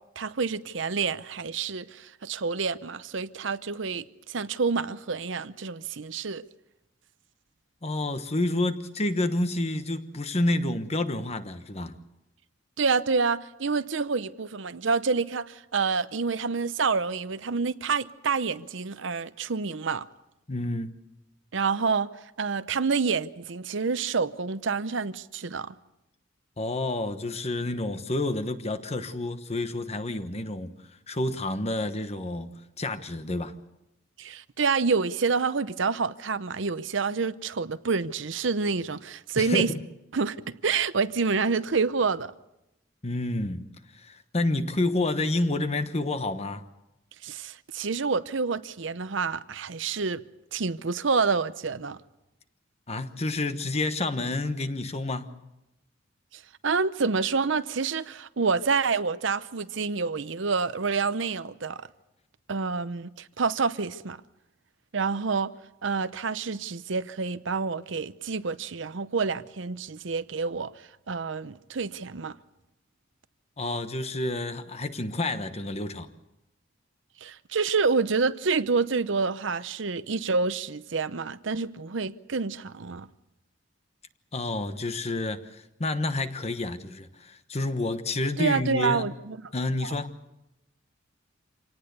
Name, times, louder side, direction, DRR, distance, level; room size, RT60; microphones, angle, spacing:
voice 1, 0.2-6.4 12.8-20.1 21.5-22.1 22.4-25.7 34.2-39.7 40.1-42.3 47.2-50.2 50.5-52.0 56.3-61.8 62.5-64.2 64.9-65.5 65.8-70.7 71.1-72.4 77.2-83.1 88.4-89.4 89.8-89.9, right 4 dB, 70° right, 0.7 m, -28 dB
voice 2, 7.8-12.0 20.5-20.9 26.6-30.8 31.1-33.5 39.4-39.8 43.0-43.7 43.9-46.6 52.9-55.3 73.6-76.1 84.3-89.1 89.5-90.1, left 2 dB, 35° left, 1.2 m, -29 dB
26.5 x 18.5 x 6.8 m
head